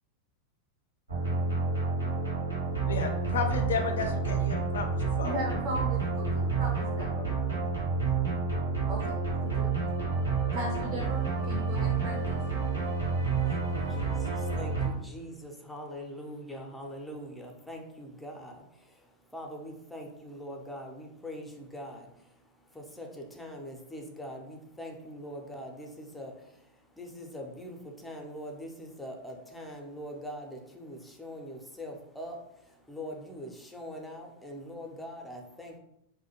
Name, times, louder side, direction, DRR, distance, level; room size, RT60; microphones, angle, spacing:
sound 1, 1.1-14.9, right 4 dB, 80° right, 0.9 m, -29 dB
voice 1, 2.9-5.4, left 6 dB, 65° left, 5 dB, 0.4 m, -33 dB
voice 2, 5.2-7.2 8.8-9.9 10.5-12.4, right 1 dB, 50° right, 0 dB, 0.5 m, -37 dB
voice 3, 13.4-18.6 19.3-22.1 22.7-26.3 27.0-32.4 32.9-35.8, equal, 5° left, 2 dB, 0.5 m, -42 dB
2.3 x 2.1 x 2.8 m, 0.80 s
figure-of-eight pair, 90°, 0 cm